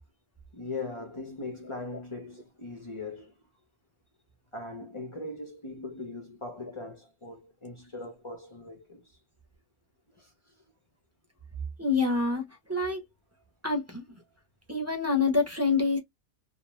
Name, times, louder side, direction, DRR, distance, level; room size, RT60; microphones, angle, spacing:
voice 1, 0.5-3.3 4.5-9.2 10.2-10.3, left 3 dB, 35° left, 0.5 m, -40 dB
voice 2, 11.8-12.4 12.7-13.0 13.6-14.1 14.7-16.0, left 4 dB, 15° right, 0.6 m, -26 dB
2.6 x 2.3 x 3.1 m
omnidirectional pair, 1.4 m